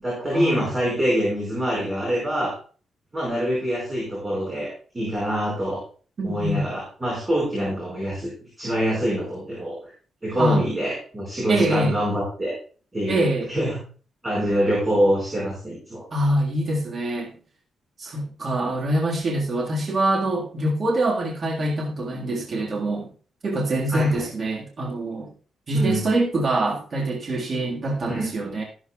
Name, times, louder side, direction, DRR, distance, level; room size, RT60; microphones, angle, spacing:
voice 1, 0.0-2.5 3.1-5.8 6.2-8.3 8.6-9.9 10.2-12.5 12.9-13.8 14.2-16.0 23.9-24.2 25.7-26.0 28.0-28.3, equal, 15° right, -4 dB, 5.2 m, -25 dB
voice 2, 6.2-6.6 10.4-10.6 11.5-11.9 13.1-13.5 16.1-17.4 18.0-23.1 23.4-25.3 25.7-28.6, right 1 dB, 35° right, -2 dB, 1.8 m, -24 dB
14.0 x 11.5 x 2.4 m, 0.41 s
wide cardioid pair, 165°, 0 cm